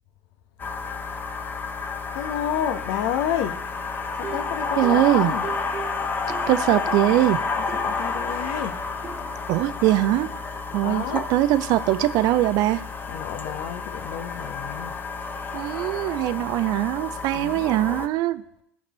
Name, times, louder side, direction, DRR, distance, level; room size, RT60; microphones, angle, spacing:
sound 1, 0.6-18.1, left 4 dB, 25° left, 0.8 m, -30 dB
voice 1, 2.1-3.7 4.1-5.5 7.6-8.8 10.8-11.3 13.1-14.9 17.3-17.7, left 9 dB, 60° left, 0.8 m, -30 dB
sound 2, 4.2-7.3 7.7-8.5 9.0-9.3, right 6 dB, 30° right, 1.4 m, -39 dB
voice 2, 4.8-5.3 6.5-7.4 9.5-10.3 10.7-11.0 11.3-12.8 15.5-18.4, right 15 dB, 50° right, 0.4 m, -21 dB
15.0 x 5.1 x 3.0 m
hypercardioid pair, 80°, 8 cm